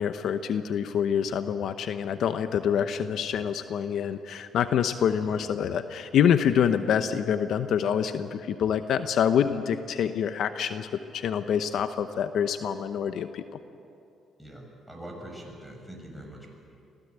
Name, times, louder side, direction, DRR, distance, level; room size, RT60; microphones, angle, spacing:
voice 1, 0.0-13.4, left 8 dB, 70° left, 10 dB, 0.8 m, -26 dB
voice 2, 14.4-16.5, right 1 dB, ahead, 1 dB, 6.2 m, -43 dB
24.5 x 17.0 x 8.2 m, 2.7 s
cardioid pair, 90°, 0 cm